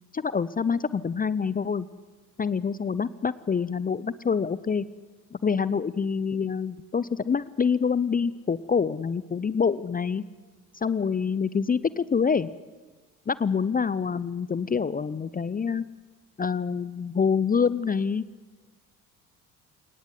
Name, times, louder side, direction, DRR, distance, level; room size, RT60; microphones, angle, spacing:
voice 1, 0.1-1.9 2.4-4.8 5.3-10.2 10.8-12.5 13.3-15.8 16.4-18.2, left 6 dB, 20° left, 18 dB, 0.7 m, -26 dB
28.5 x 19.0 x 8.3 m, 1.3 s
figure-of-eight pair, 50°, 44 cm